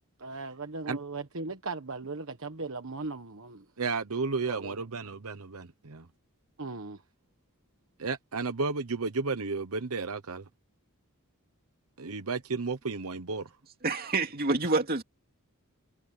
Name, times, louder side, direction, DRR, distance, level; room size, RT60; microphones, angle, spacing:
voice 1, 0.2-3.6 4.5-4.8 6.6-7.0, right 3 dB, 65° right, 1.3 m, -38 dB
voice 2, 3.8-6.1 8.0-10.5 12.0-13.5, right 4 dB, 80° right, 1.0 m, -33 dB
voice 3, 13.8-15.0, right 3 dB, 45° right, 2.5 m, -27 dB
head